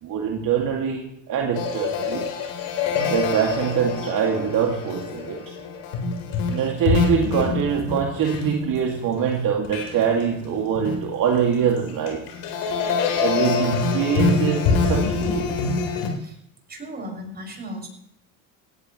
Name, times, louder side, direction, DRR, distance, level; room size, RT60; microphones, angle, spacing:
voice 1, 0.0-2.3 3.1-5.5 6.5-12.2 13.2-15.5, right 7 dB, 55° right, 0 dB, 2.4 m, -24 dB
sound 1, 1.5-9.3 9.7-10.2 10.6-16.1, left 5 dB, 75° left, 4.1 m, -25 dB
voice 2, 16.7-17.9, equal, 25° right, 1 dB, 6.5 m, -36 dB
17.5 x 16.5 x 3.2 m, 0.75 s
supercardioid pair, 85°, 40 cm